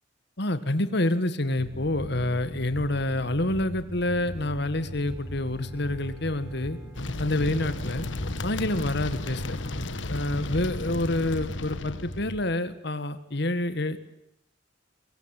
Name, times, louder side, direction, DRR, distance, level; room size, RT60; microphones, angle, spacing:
voice 1, 0.4-6.8 7.2-8.0 8.4-9.6 10.1-14.0, left 1 dB, 60° left, 11 dB, 1.9 m, -27 dB
sound 1, 1.6-12.4, equal, 25° left, 5.6 m, -40 dB
Bowed string instrument, 4.7-10.7, right 2 dB, 25° right, 6.0 m, -49 dB
sound 2, 6.9-12.2, left 2 dB, 75° left, 1.4 m, -34 dB
23.0 x 22.5 x 9.2 m, 0.82 s
head